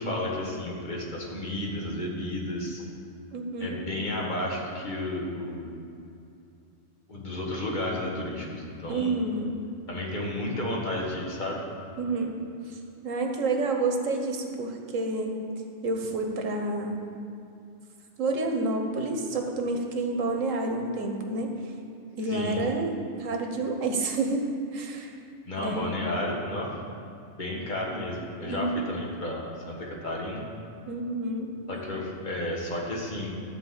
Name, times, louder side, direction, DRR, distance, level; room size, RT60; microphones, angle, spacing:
voice 1, 0.0-2.8 3.6-5.8 7.1-9.2 9.9-11.6 22.3-22.6 25.5-26.8 27.3-30.4 31.7-33.3, left 1 dB, 40° left, -2 dB, 1.8 m, -32 dB
voice 2, 3.3-3.8 8.9-9.5 12.0-12.4 12.7-15.4 15.8-17.0 18.2-21.5 22.2-25.1 25.6-26.1 28.5-28.8 30.9-31.5, right 2 dB, 90° right, 3 dB, 1.5 m, -29 dB
12.5 x 4.5 x 7.5 m, 2.5 s
omnidirectional pair, 1.3 m